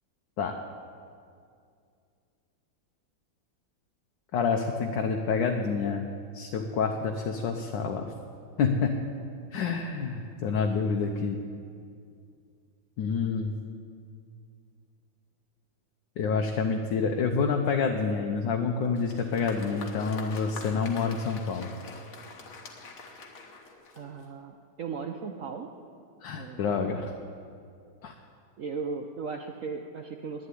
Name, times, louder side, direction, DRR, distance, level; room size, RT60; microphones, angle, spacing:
voice 1, 4.3-8.1 8.6-9.0 9.5-11.4 13.0-13.5 16.2-21.7 26.2-27.1 28.0-28.1, left 5 dB, 70° left, 3 dB, 1.5 m, -28 dB
Applause, 18.8-24.4, left 3 dB, 50° left, 1.5 m, -45 dB
voice 2, 23.9-25.7 26.3-26.9 28.6-30.5, right 5 dB, 70° right, 4 dB, 0.7 m, -37 dB
11.5 x 9.6 x 9.8 m, 2.3 s
omnidirectional pair, 2.1 m